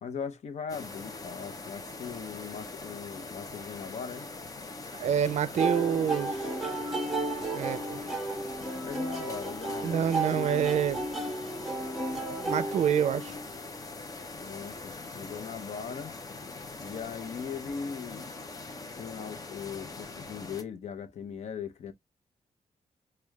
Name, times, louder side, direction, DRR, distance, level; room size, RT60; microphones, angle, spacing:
voice 1, 0.0-4.3 5.9-6.1 8.8-10.8 14.4-16.1 16.8-18.3 19.0-21.9, left 6 dB, 70° left, 0.7 m, -39 dB
sound 1, 0.7-20.6, left 3 dB, 30° left, 0.7 m, -42 dB
voice 2, 4.9-6.5 7.5-8.0 9.8-11.0 12.4-13.3, right 8 dB, 70° right, 0.4 m, -27 dB
sound 2, 5.6-13.5, right 2 dB, ahead, 1.1 m, -34 dB
6.3 x 2.3 x 2.2 m
wide cardioid pair, 140°, 12 cm